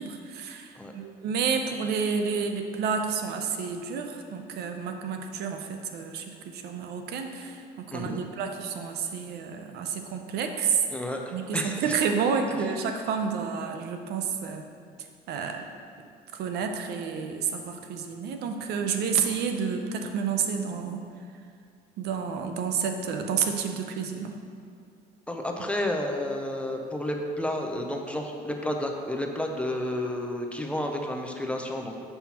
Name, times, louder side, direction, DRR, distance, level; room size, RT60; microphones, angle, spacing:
voice 1, 0.0-10.8 11.3-14.7 15.3-15.6 16.3-21.0 22.0-24.4, right 6 dB, 75° right, 5 dB, 0.6 m, -30 dB
voice 2, 7.9-8.2 10.9-11.9 15.4-15.5 25.3-32.1, left 1 dB, 5° left, 2 dB, 0.5 m, -31 dB
7.2 x 5.5 x 2.9 m, 2.3 s
cardioid pair, 110°, 17 cm